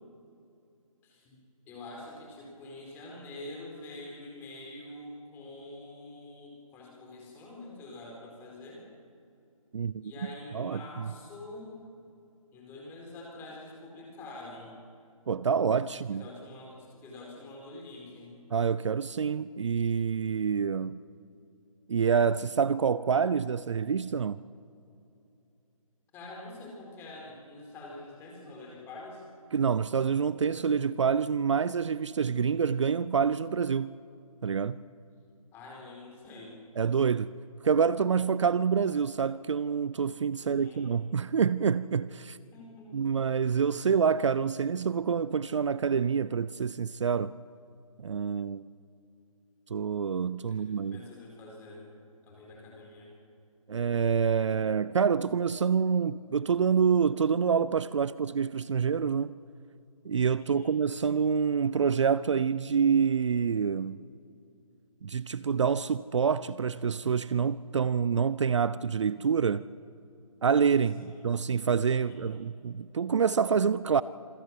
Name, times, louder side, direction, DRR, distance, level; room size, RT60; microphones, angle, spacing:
voice 1, 1.0-1.4 1.7-8.8 10.0-11.7 12.5-14.8 15.9-18.3 26.1-29.2 35.5-36.6 40.4-40.9 42.5-43.2 50.5-51.9 52.2-53.1 60.4-60.7 71.0-71.2 72.1-72.4, left 2 dB, 10° left, 4.4 m, -46 dB
voice 2, 10.5-11.1 15.3-16.2 18.5-21.0 21.9-24.4 29.5-33.9 34.4-34.8 36.8-37.3 37.6-42.4 42.9-47.3 48.0-48.7 49.7-51.0 53.7-59.3 60.0-64.0 65.0-69.7 70.4-74.0, right 6 dB, 55° right, 0.5 m, -27 dB
26.5 x 16.0 x 7.7 m
hypercardioid pair, 160°, 18 cm